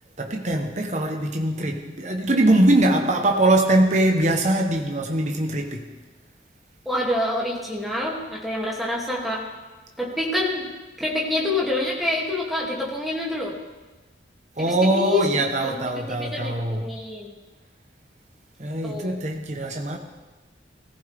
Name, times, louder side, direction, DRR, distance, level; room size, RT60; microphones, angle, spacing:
voice 1, 0.2-5.8 14.6-16.8 18.6-20.0, right 1 dB, 40° right, 3 dB, 1.0 m, -22 dB
voice 2, 6.9-9.4 10.0-10.7 11.0-13.5 14.6-15.2 15.6-17.4 18.8-19.2, left 1 dB, ahead, -4 dB, 2.5 m, -27 dB
20.5 x 14.5 x 3.5 m, 1.2 s
head